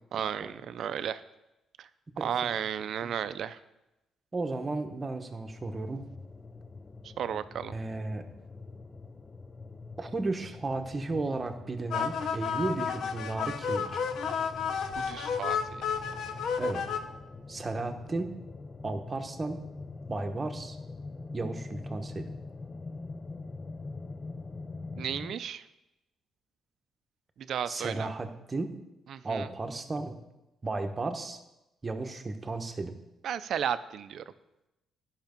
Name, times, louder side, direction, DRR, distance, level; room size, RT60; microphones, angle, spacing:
voice 1, 0.1-1.2 1.8-1.9 2.2-3.6 7.2-7.7 15.0-15.8 25.0-25.6 27.4-28.1 29.1-29.5 33.2-34.2, right 8 dB, 65° right, 13 dB, 0.5 m, -34 dB
voice 2, 2.2-2.5 3.0-3.1 4.3-6.1 7.7-8.2 10.0-14.0 16.6-16.8 17.5-18.3 18.8-19.6 20.1-20.8 21.3-22.3 27.7-28.7 29.2-30.2 30.6-31.4 31.8-32.9, right 3 dB, 30° right, 6 dB, 1.0 m, -34 dB
sound 1, 5.4-25.3, left 3 dB, 30° left, 0.5 m, -44 dB
sound 2, 11.9-17.0, left 6 dB, 70° left, 0.8 m, -31 dB
10.5 x 5.8 x 5.2 m, 0.95 s
cardioid pair, 90°, 0 cm